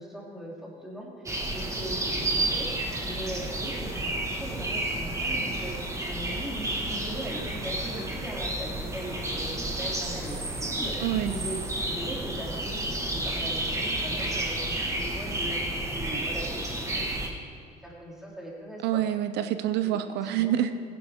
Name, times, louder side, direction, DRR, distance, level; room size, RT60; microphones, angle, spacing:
voice 1, 0.0-2.7 3.0-5.7 6.1-19.0 19.8-19.9 20.2-20.7, equal, ahead, -4 dB, 3.0 m, -40 dB
sound 1, 1.3-17.3, right 1 dB, 15° right, 1.6 m, -31 dB
voice 2, 11.0-11.3 18.8-20.8, right 11 dB, 80° right, 10 dB, 0.6 m, -27 dB
15.5 x 11.0 x 3.6 m, 2.4 s
cardioid pair, 110°, 17 cm